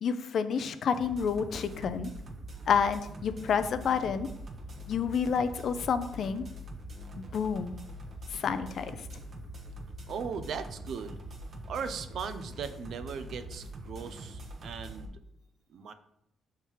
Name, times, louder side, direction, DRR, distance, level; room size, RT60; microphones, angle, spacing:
voice 1, 0.0-2.1 2.7-4.3 4.9-6.4 7.3-7.8 8.3-8.9, left 6 dB, 60° left, 11 dB, 0.4 m, -29 dB
sound 1, 0.9-15.1, right 1 dB, 50° right, 1.1 m, -43 dB
voice 2, 10.1-11.2 11.7-15.2 15.7-15.9, right 6 dB, 65° right, 10 dB, 0.5 m, -38 dB
5.6 x 3.6 x 4.6 m, 0.77 s
cardioid pair, 90°, 0 cm